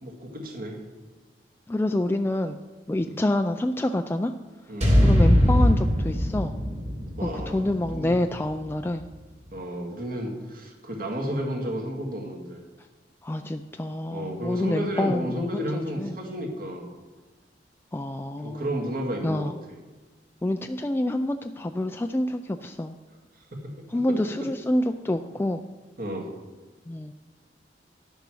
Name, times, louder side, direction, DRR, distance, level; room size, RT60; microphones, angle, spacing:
voice 1, 0.0-0.8 2.9-3.1 4.7-4.9 7.2-7.6 7.9-8.2 9.5-12.6 14.1-16.9 18.4-19.5 23.5-23.6 23.9-24.2 26.0-26.3, equal, 55° right, 1 dB, 1.9 m, -32 dB
voice 2, 1.7-2.6 2.9-4.3 5.0-6.5 7.2-9.0 13.2-16.2 17.9-18.7 19.2-19.5 20.4-22.9 23.9-25.6 26.9-27.1, left 1 dB, 15° left, 6 dB, 0.3 m, -27 dB
sound 1, 4.8-9.0, equal, 40° right, 2.6 m, -22 dB
11.0 x 6.8 x 6.2 m, 1.2 s
head